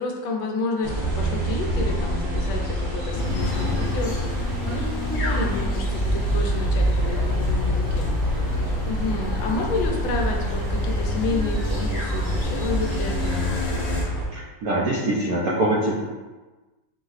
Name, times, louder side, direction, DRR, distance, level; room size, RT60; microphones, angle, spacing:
voice 1, 0.0-8.1 8.8-13.5, left 3 dB, 80° left, 1 dB, 1.4 m, -30 dB
sound 1, 0.8-14.3, right 1 dB, 55° right, 1.2 m, -26 dB
sound 2, 3.1-14.0, left 2 dB, 55° left, 0.9 m, -30 dB
voice 2, 14.3-16.1, right 1 dB, 70° right, -5 dB, 0.9 m, -24 dB
4.6 x 2.0 x 3.9 m, 1.2 s
omnidirectional pair, 2.2 m